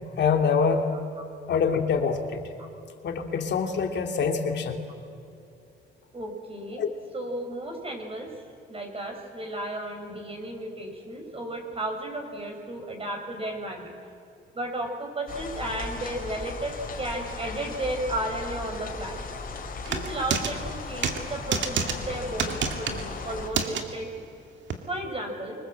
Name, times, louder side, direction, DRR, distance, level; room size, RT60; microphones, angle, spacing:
voice 1, 0.2-0.9 1.5-2.4 3.0-4.9 6.8-6.9, left 5 dB, 60° left, 3 dB, 2.8 m, -25 dB
voice 2, 6.1-6.8 7.1-8.3 8.7-13.9 14.5-19.2 19.8-24.2 24.9-25.6, right 1 dB, 30° right, 3 dB, 5.8 m, -34 dB
sound 1, 15.3-23.5, left 4 dB, 45° left, 3.9 m, -37 dB
sound 2, 19.9-20.5 21.0-21.2 21.5-21.9 22.4-23.0 23.5-23.8 24.7-24.8, right 6 dB, 65° right, 2.1 m, -27 dB
24.5 x 22.0 x 7.8 m, 2.7 s
cardioid pair, 90°, 20 cm